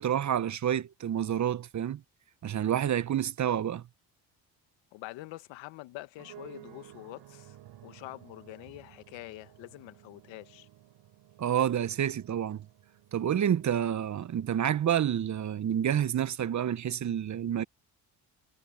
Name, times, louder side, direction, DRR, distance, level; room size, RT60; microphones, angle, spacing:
voice 1, 0.0-2.0 2.4-3.8 11.4-12.7 13.1-17.6, right 10 dB, 40° right, 0.8 m, -29 dB
voice 2, 4.9-7.6 7.8-10.7, left 18 dB, 80° left, 1.6 m, -45 dB
sound 1, 6.2-16.2, right 14 dB, 70° right, 3.5 m, -55 dB
supercardioid pair, 70°, 44 cm